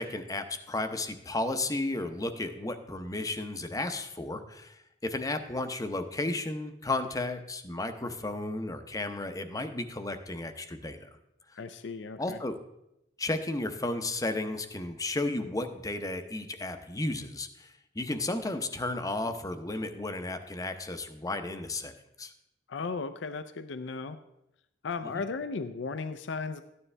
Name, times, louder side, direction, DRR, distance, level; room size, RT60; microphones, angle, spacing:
voice 1, 0.0-11.1 12.2-12.6 13.2-21.9 22.2-22.3 25.0-25.2, left 2 dB, 20° left, 8 dB, 0.7 m, -33 dB
voice 2, 11.5-12.4 22.7-24.2 24.8-26.6, left 4 dB, 70° left, 10 dB, 0.5 m, -35 dB
13.0 x 9.7 x 3.3 m, 0.85 s
head